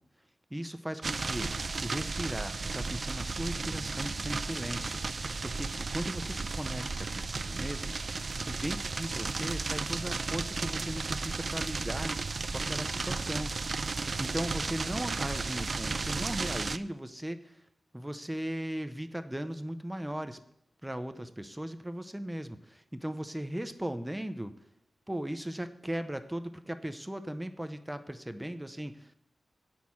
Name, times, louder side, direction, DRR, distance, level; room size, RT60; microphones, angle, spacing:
voice 1, 0.5-12.2 12.5-13.5 14.1-17.7 17.9-20.4 20.8-24.5 25.1-29.1, right 1 dB, 10° right, 9 dB, 0.6 m, -38 dB
sound 1, 1.0-16.8, right 4 dB, 50° right, 0.4 m, -34 dB
Bass guitar, 3.6-7.2, left 1 dB, 10° left, 5.3 m, -53 dB
8.9 x 6.2 x 8.5 m, 0.76 s
wide cardioid pair, 100°, 0 cm